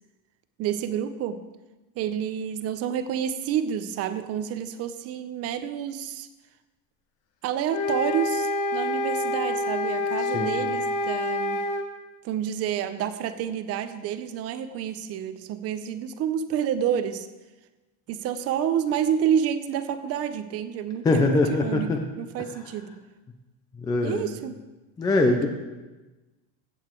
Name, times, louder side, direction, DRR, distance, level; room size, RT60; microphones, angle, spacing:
voice 1, 0.6-1.4 2.0-6.3 7.4-11.6 12.2-17.3 18.1-22.9 24.0-24.6, right 9 dB, 35° right, 12 dB, 0.6 m, -29 dB
sound 1, 7.7-11.9, left 2 dB, 45° left, 1.2 m, -27 dB
voice 2, 21.0-22.0 23.8-24.3 25.0-25.5, left 2 dB, 10° left, 3 dB, 0.4 m, -22 dB
15.0 x 8.1 x 4.4 m, 1.2 s
cardioid pair, 165°, 44 cm